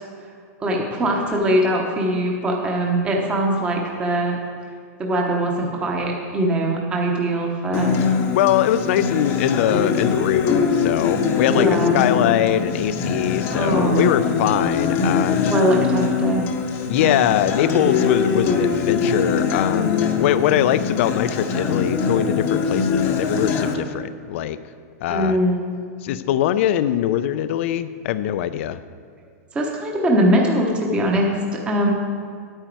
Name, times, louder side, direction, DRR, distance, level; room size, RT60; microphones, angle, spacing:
voice 1, 0.6-4.4 5.0-8.0 11.5-12.0 13.5-14.1 15.5-16.5 25.1-25.7 29.5-31.9, right 1 dB, 10° right, 0 dB, 0.8 m, -21 dB
Acoustic guitar, 7.7-23.7, left 5 dB, 25° left, 0.7 m, -22 dB
voice 2, 8.3-11.7 11.9-15.5 16.9-24.6 25.0-25.4 26.0-28.8, left 11 dB, 50° left, 13 dB, 0.4 m, -22 dB
10.0 x 8.9 x 4.6 m, 2.2 s
supercardioid pair, 170°, 9 cm